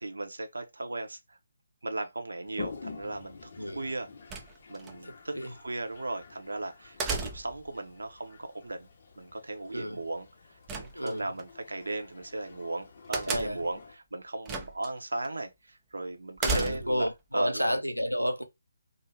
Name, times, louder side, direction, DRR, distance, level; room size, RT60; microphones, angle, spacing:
voice 1, 0.0-1.4 1.8-4.1 4.7-8.9 9.2-10.3 10.7-17.1 17.3-17.8, right 2 dB, 65° right, 0.6 m, -36 dB
Toilet flush, 2.4-14.0, left 4 dB, 45° left, 0.6 m, -48 dB
sound 1, 4.3-4.9 7.0-7.7 10.7-11.4 13.1-13.7 14.5-14.9 15.2-15.3 16.4-17.1, right 3 dB, 15° right, 0.4 m, -33 dB
voice 2, 5.0-5.5 9.7-10.0 10.9-11.3 13.3-13.6 16.4-18.4, equal, 90° left, 0.6 m, -31 dB
2.5 x 2.0 x 3.2 m
figure-of-eight pair, 145°, 0 cm